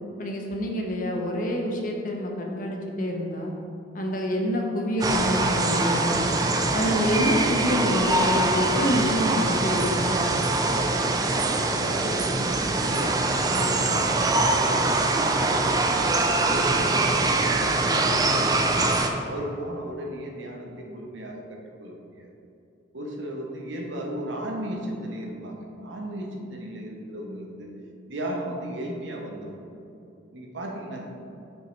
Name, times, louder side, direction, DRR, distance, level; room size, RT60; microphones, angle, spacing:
voice 1, 0.2-3.5 3.9-6.3 6.7-10.2, equal, 45° left, 1 dB, 0.7 m, -27 dB
sound 1, 5.0-19.1, right 2 dB, 20° right, 0.3 m, -23 dB
voice 2, 11.8-16.2 16.5-18.9 19.3-22.3 22.9-27.7 28.1-29.6 30.3-31.1, right 1 dB, 75° right, 1 dB, 0.9 m, -36 dB
5.3 x 4.1 x 4.5 m, 2.7 s
head